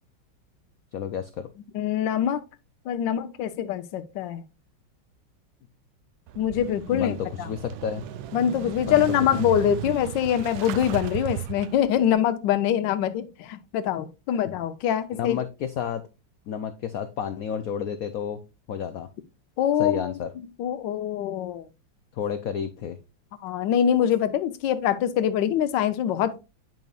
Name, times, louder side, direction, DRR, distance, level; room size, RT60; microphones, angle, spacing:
voice 1, 0.9-1.5 6.9-8.1 8.9-9.0 9.3-9.4 14.5-14.6 15.1-16.0 16.5-18.4 18.7-19.1 19.8-20.3 22.1-23.0, left 8 dB, 90° left, 0.7 m, -31 dB
voice 2, 1.7-2.4 2.9-4.4 6.4-7.5 8.3-15.4 19.6-20.1 20.6-21.7 23.4-26.4, left 10 dB, 75° left, 1.3 m, -24 dB
Motorcycle / Engine starting, 6.3-12.1, right 12 dB, 85° right, 1.4 m, -36 dB
9.2 x 5.2 x 2.3 m
omnidirectional pair, 2.2 m